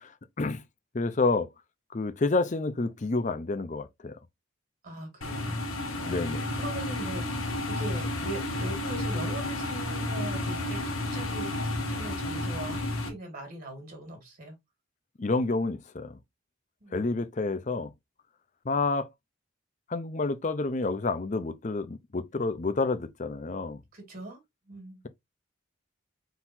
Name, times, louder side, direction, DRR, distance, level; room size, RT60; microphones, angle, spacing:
voice 1, 0.9-1.5 1.9-4.1 6.1-6.5 15.2-16.2 16.9-17.9 18.7-19.1 19.9-23.8, left 3 dB, 35° left, 0.5 m, -29 dB
voice 2, 4.8-5.6 6.0-14.6 16.8-17.0 23.9-24.4 24.7-25.0, right 2 dB, 45° right, 1.9 m, -41 dB
sound 1, 5.2-13.1, left 1 dB, 85° left, 1.6 m, -31 dB
4.4 x 3.9 x 2.6 m
head